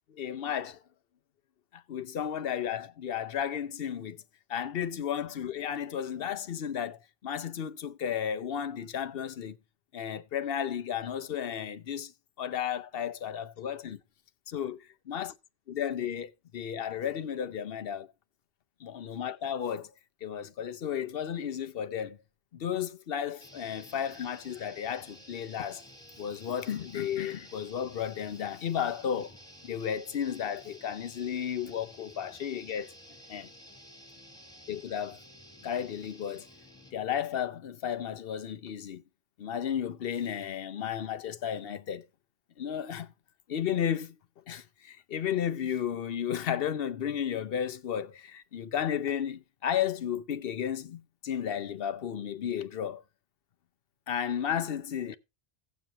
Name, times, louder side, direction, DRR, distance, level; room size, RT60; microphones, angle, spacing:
voice 1, 0.1-0.8 1.7-4.2 4.5-9.6 9.9-12.1 12.4-14.0 14.5-15.3 15.7-18.1 18.8-19.9 20.2-22.2 22.5-25.8 26.2-29.3 29.6-32.9 33.3-33.5 34.7-35.2 35.6-36.5 36.9-39.0 39.4-42.1 42.6-43.1 43.5-44.1 44.5-53.0 54.1-55.2, left 9 dB, 70° left, 0.9 m, -33 dB
sound 1, 23.4-37.1, equal, 5° left, 1.6 m, -52 dB
17.0 x 7.2 x 2.9 m
omnidirectional pair, 1.0 m